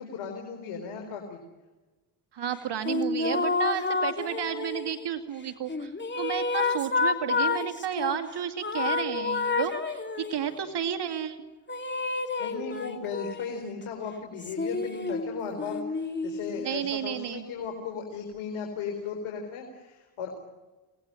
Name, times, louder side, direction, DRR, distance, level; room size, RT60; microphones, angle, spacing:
voice 1, 0.0-1.4 10.4-10.6 12.4-20.3, left 6 dB, 80° left, 3 dB, 4.4 m, -36 dB
voice 2, 2.3-5.9 6.2-11.4 16.6-17.5, right 9 dB, 60° right, 8 dB, 2.2 m, -32 dB
sound 1, 2.8-5.1 5.7-8.2 8.6-10.5 11.7-13.6 14.4-16.7, left 4 dB, 25° left, 2.8 m, -30 dB
26.0 x 19.0 x 8.9 m, 1.2 s
supercardioid pair, 65°, 48 cm